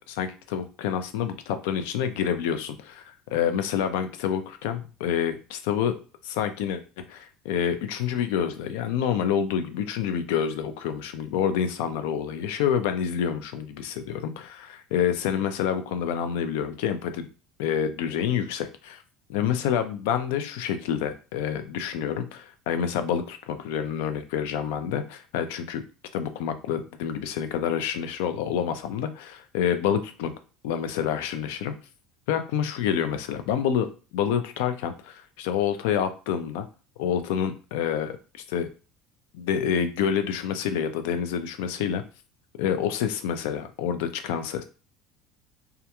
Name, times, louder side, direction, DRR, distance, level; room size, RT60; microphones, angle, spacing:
voice 1, 0.0-6.0 6.2-17.3 17.6-19.0 19.3-25.8 26.1-30.3 30.6-31.7 32.3-36.7 37.0-38.7 39.3-42.0 42.6-44.6, left 8 dB, 85° left, 9 dB, 0.3 m, -28 dB
2.3 x 2.2 x 2.8 m, 0.35 s
cardioid pair, 130°, 0 cm